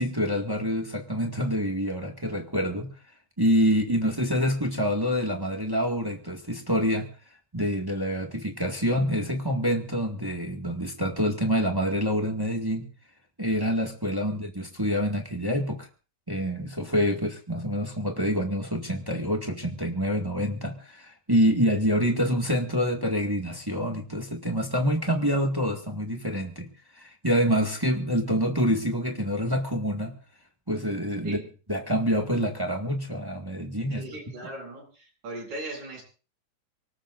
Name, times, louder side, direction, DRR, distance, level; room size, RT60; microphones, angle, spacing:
voice 1, 0.0-2.9 3.4-7.1 7.5-12.8 13.4-15.9 16.3-26.7 26.9-30.1 30.7-31.4 31.7-34.0, equal, 10° right, 2 dB, 1.2 m, -26 dB
voice 2, 33.9-36.0, right 2 dB, 70° right, -1 dB, 9.5 m, -39 dB
24.5 x 19.0 x 2.6 m, 0.36 s
omnidirectional pair, 3.7 m